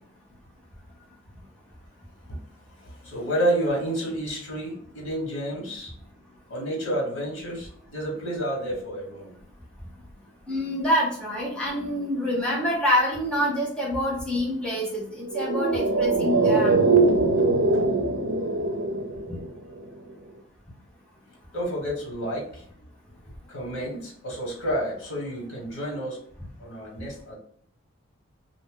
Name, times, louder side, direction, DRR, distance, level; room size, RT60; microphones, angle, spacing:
voice 1, 2.8-5.9 6.5-9.3 17.7-17.8 21.5-22.6 23.5-26.2 26.6-27.3, right 1 dB, 85° left, -2 dB, 1.3 m, -30 dB
voice 2, 10.5-16.8, equal, 5° left, -5 dB, 0.9 m, -26 dB
sound 1, 15.3-19.8 20.1-20.2, right 3 dB, 85° right, 0.5 m, -22 dB
2.7 x 2.5 x 3.7 m, 0.65 s
head